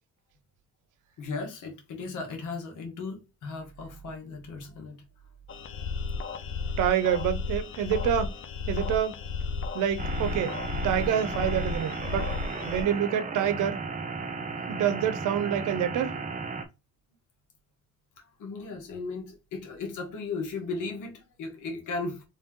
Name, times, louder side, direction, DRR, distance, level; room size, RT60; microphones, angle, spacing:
voice 1, 1.2-5.0 18.4-22.2, left 3 dB, 80° left, 1.4 m, -36 dB
sound 1, 5.5-12.8, left 4 dB, 45° left, 0.6 m, -33 dB
voice 2, 6.8-8.3 8.7-9.2 9.7-10.6 10.8-12.3 12.7-13.8 14.7-16.1, right 9 dB, 85° right, 0.7 m, -27 dB
sound 2, 10.0-16.7, right 4 dB, 25° right, 0.7 m, -35 dB
3.4 x 2.8 x 3.6 m
cardioid pair, 90°, 30 cm